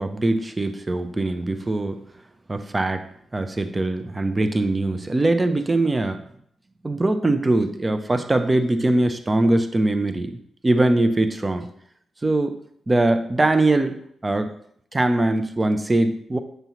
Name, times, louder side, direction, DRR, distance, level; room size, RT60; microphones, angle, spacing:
voice 1, 0.0-2.0 2.5-3.0 3.3-6.2 6.8-10.4 10.6-11.7 12.2-12.6 12.9-14.5 14.9-16.4, right 2 dB, 25° right, 8 dB, 0.7 m, -22 dB
8.0 x 5.4 x 3.1 m, 0.66 s
cardioid pair, 75°, 0 cm